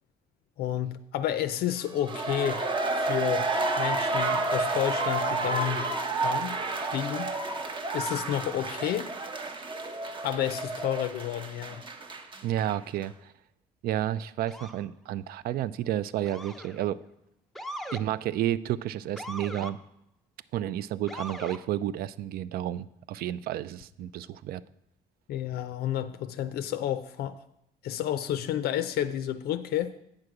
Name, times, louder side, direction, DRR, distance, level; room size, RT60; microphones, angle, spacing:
voice 1, 0.6-2.7 3.0-3.5 3.8-5.9 6.2-6.6 6.9-7.4 7.9-9.1 10.2-11.8 25.3-27.4 27.8-29.9, left 11 dB, 70° left, 0.5 m, -30 dB
sound 1, 1.9-12.7 13.0-13.1, right 2 dB, 30° right, 0.9 m, -30 dB
voice 2, 12.4-13.3 13.8-17.0 17.9-19.8 20.5-24.6, right 12 dB, 65° right, 0.4 m, -31 dB
Motor vehicle (road) / Siren, 14.5-14.9 16.3-16.8 17.6-18.0 19.2-19.7 21.1-21.6, equal, ahead, 0.5 m, -40 dB
8.6 x 6.4 x 4.8 m
cardioid pair, 110°, 17 cm